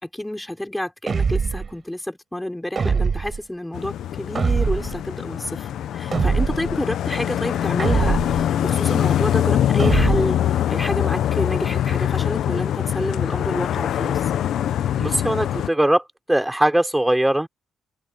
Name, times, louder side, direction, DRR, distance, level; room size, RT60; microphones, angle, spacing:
voice 1, 0.0-14.2, left 1 dB, 5° left, 3.9 m, -29 dB
sound 1, 1.1-1.7 2.8-3.4 4.4-5.0 6.1-6.8 7.8-8.5 9.8-10.4, right 5 dB, 40° right, 7.5 m, -22 dB
sound 2, 3.7-15.7, left 11 dB, 70° left, 0.7 m, -23 dB
voice 2, 15.0-16.0 16.3-17.5, right 1 dB, 10° right, 3.8 m, -20 dB
cardioid pair, 90°, 0 cm